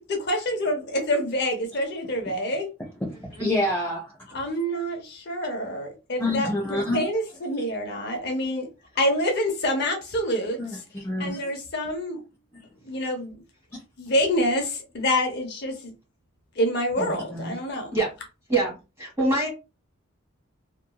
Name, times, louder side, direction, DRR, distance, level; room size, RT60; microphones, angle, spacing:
voice 1, 0.1-2.7 4.3-8.7 9.0-10.6 11.2-12.2 12.8-13.3 14.0-15.9 16.6-18.0, equal, 50° left, 0.7 m, -27 dB
voice 2, 3.4-4.1 6.2-7.1 10.6-11.4 12.5-12.6 13.7-13.8 17.0-17.6, left 1 dB, 10° left, 0.6 m, -28 dB
voice 3, 18.5-19.5, right 2 dB, 15° right, 1.2 m, -24 dB
2.9 x 2.6 x 2.2 m
head